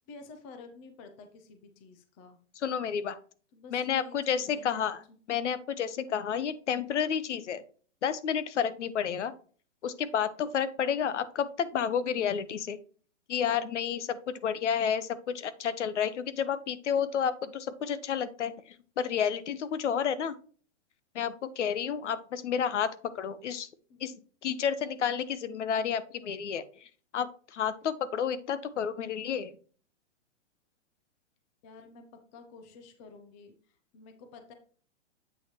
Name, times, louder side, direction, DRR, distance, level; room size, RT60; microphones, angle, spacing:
voice 1, 0.1-2.4 3.5-5.2 23.9-24.1 31.6-34.5, left 4 dB, 10° left, 7 dB, 0.4 m, -51 dB
voice 2, 2.6-3.2 3.7-5.0 5.3-7.6 8.0-9.3 9.8-12.8 13.3-18.5 19.0-20.4 21.1-23.7 24.0-24.1 24.4-26.9 27.1-29.5, left 8 dB, 80° left, 14 dB, 0.9 m, -30 dB
8.2 x 6.1 x 2.9 m, 0.42 s
hypercardioid pair, 150°, 35 cm